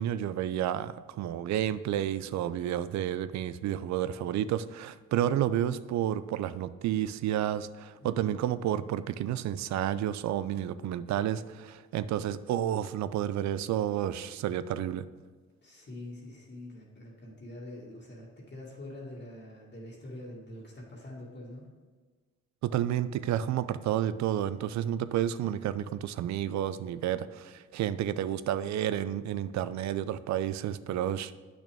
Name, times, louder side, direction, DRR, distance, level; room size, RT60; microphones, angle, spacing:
voice 1, 0.0-15.0 22.6-31.4, right 11 dB, 65° right, 14 dB, 0.4 m, -31 dB
voice 2, 15.6-21.7, left 1 dB, 35° left, -4 dB, 1.9 m, -45 dB
8.4 x 6.1 x 3.5 m, 1.4 s
cardioid pair, 90°, 30 cm